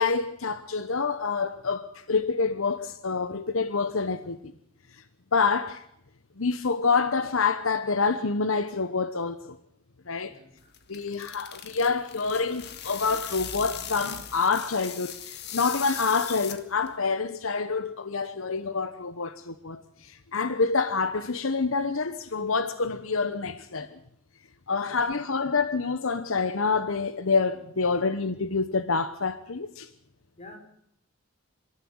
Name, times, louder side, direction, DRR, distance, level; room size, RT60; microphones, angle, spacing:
voice 1, 0.0-4.5 4.9-5.0 5.3-5.8 6.4-9.6 10.1-10.4 10.9-24.0 24.7-29.9, left 4 dB, 70° left, 1.0 m, -27 dB
voice 2, 10.2-10.7 24.8-25.3 30.4-30.6, left 2 dB, 30° left, 4.7 m, -49 dB
sound 1, 10.6-16.9, left 9 dB, 50° left, 1.8 m, -39 dB
26.0 x 13.5 x 8.7 m
head